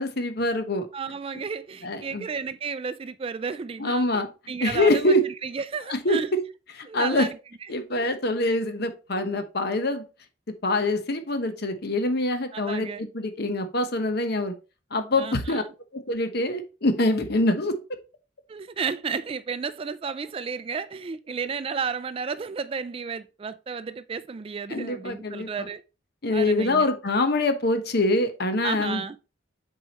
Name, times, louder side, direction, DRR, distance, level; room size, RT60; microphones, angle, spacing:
voice 1, 0.0-0.9 1.8-2.2 3.8-4.3 4.6-5.3 5.9-6.4 6.7-7.3 7.7-10.0 10.6-14.5 14.9-15.6 15.9-17.8 24.7-25.5 26.2-29.0, left 2 dB, 55° left, 1.0 m, -25 dB
voice 2, 0.9-6.3 6.9-7.7 8.0-8.1 12.5-13.1 15.1-15.7 18.5-25.8 26.3-26.9 28.6-29.2, right 5 dB, 30° right, 0.3 m, -33 dB
7.6 x 4.7 x 2.9 m
head